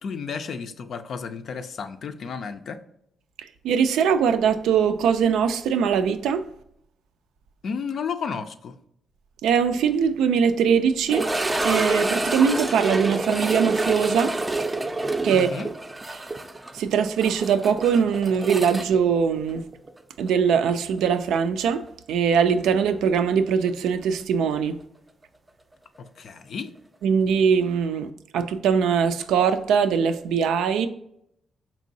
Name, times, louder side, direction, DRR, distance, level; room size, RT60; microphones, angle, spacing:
voice 1, 0.0-2.8 7.6-8.8 15.3-15.7 26.0-26.7, left 5 dB, 65° left, 0.4 m, -32 dB
voice 2, 3.4-6.4 9.4-11.3 11.6-14.4 15.2-15.5 16.1-16.2 16.7-19.7 20.2-24.8 27.0-30.9, right 7 dB, 90° right, 0.3 m, -22 dB
sound 1, 11.1-20.0 20.3-20.4 21.0-21.1 23.7-23.8, right 2 dB, 20° right, 0.4 m, -28 dB
4.4 x 3.0 x 2.6 m
cardioid pair, 70°, 0 cm